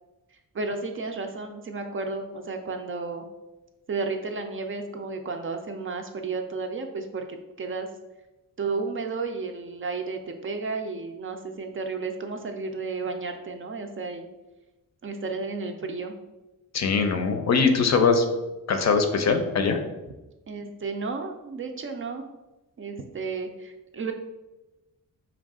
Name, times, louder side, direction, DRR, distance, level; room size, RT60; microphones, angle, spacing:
voice 1, 0.5-3.2 3.9-7.9 8.6-14.3 15.0-16.2 20.5-22.2 22.8-24.1, right 4 dB, 40° right, 5 dB, 0.4 m, -32 dB
voice 2, 16.7-18.3 18.7-19.8, left 5 dB, 50° left, 6 dB, 0.5 m, -21 dB
5.3 x 2.4 x 3.6 m, 1.0 s
wide cardioid pair, 160°, 34 cm